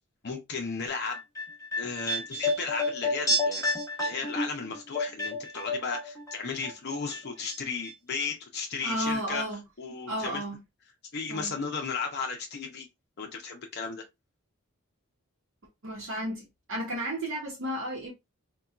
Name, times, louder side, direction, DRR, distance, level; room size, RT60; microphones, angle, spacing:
voice 1, 0.2-1.2 1.8-3.6 4.0-9.4 9.8-10.4 11.1-12.9 13.2-14.0, left 5 dB, 50° left, 0.6 m, -35 dB
sound 1, 1.1-6.4 6.6-7.6 7.8-7.9, left 1 dB, 15° left, 1.0 m, -30 dB
voice 2, 8.8-9.6 10.1-10.6 11.3-11.5 15.8-18.1, equal, 60° right, 0.8 m, -33 dB
4.1 x 2.2 x 2.4 m
head